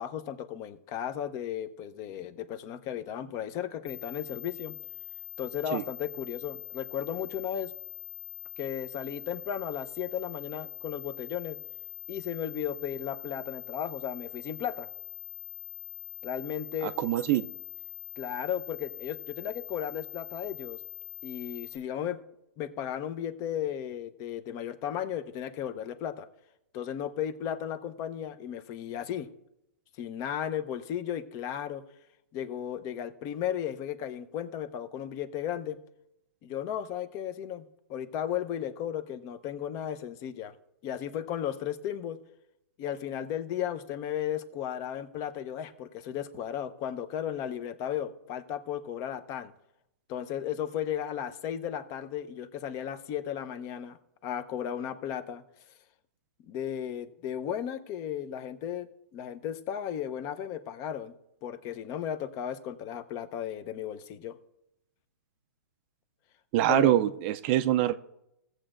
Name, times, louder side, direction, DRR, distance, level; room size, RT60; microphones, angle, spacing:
voice 1, 0.0-4.8 5.4-7.7 8.6-11.6 12.1-14.9 16.2-16.9 18.2-20.8 21.2-22.2 22.6-26.3 26.7-29.3 30.0-31.8 32.3-35.8 36.4-37.6 37.9-40.5 40.8-42.2 42.8-49.5 50.1-54.0 54.2-55.4 56.4-58.9 59.1-61.1 61.4-64.4 66.7-67.1, left 10 dB, 35° left, 12 dB, 0.7 m, -35 dB
sound 1, 3.9-21.8, left 22 dB, 55° left, 1.1 m, -43 dB
voice 2, 16.8-17.5 66.5-67.9, right 14 dB, 40° right, 11 dB, 0.4 m, -24 dB
16.5 x 7.8 x 2.5 m, 0.82 s
hypercardioid pair, 135°, 9 cm